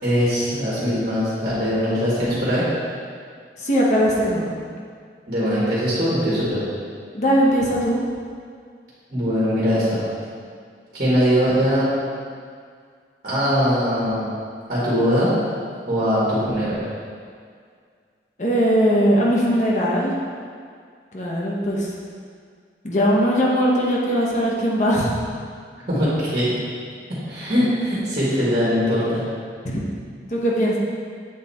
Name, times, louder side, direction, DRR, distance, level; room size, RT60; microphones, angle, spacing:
voice 1, 0.0-2.6 5.3-6.6 9.1-10.0 10.9-11.9 13.2-14.3 14.7-15.3 15.9-16.8 25.9-26.6 27.3-29.2, equal, 50° right, -9 dB, 1.7 m, -21 dB
voice 2, 3.6-4.5 7.1-8.0 18.4-20.1 21.1-21.9 22.8-25.1 29.6-29.8 30.3-30.8, equal, 45° left, -4 dB, 0.9 m, -20 dB
7.7 x 4.0 x 4.2 m, 2.1 s
head